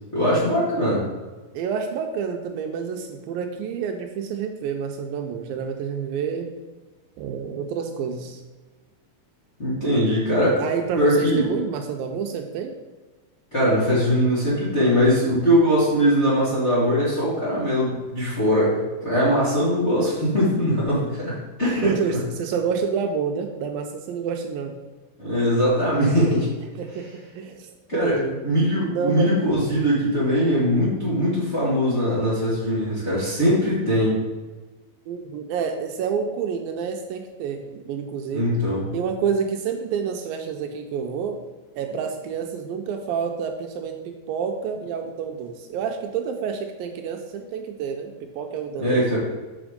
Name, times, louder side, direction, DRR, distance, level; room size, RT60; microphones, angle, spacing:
voice 1, 0.1-1.0 9.6-10.6 11.0-11.4 13.5-22.2 25.2-26.5 27.9-34.2 38.3-38.9 48.8-49.2, equal, 25° left, -8 dB, 1.5 m, -21 dB
voice 2, 1.5-6.5 7.2-8.4 10.6-12.7 21.8-24.7 26.8-28.4 28.9-29.3 35.1-38.5 38.9-41.4 41.8-49.0, right 6 dB, 80° right, 4 dB, 2.3 m, -28 dB
6.1 x 5.8 x 5.0 m, 1.3 s
omnidirectional pair, 4.3 m